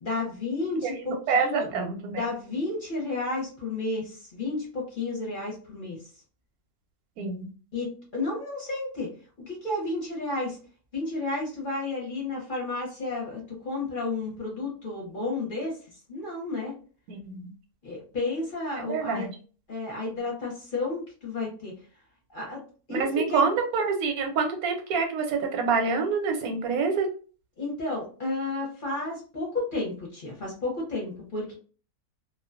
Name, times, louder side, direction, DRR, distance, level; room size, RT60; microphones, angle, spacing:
voice 1, 0.0-1.7 2.2-6.0 7.7-9.1 9.5-10.6 10.9-15.8 16.1-16.7 17.8-19.3 19.7-21.7 22.3-22.6 22.9-23.4 27.6-31.5, left 2 dB, 45° left, -3 dB, 0.8 m, -32 dB
voice 2, 0.8-2.3 7.2-7.5 17.1-17.5 18.8-19.3 22.9-27.1, right 5 dB, 85° right, 4 dB, 1.1 m, -27 dB
2.4 x 2.2 x 2.4 m, 0.39 s
omnidirectional pair, 1.5 m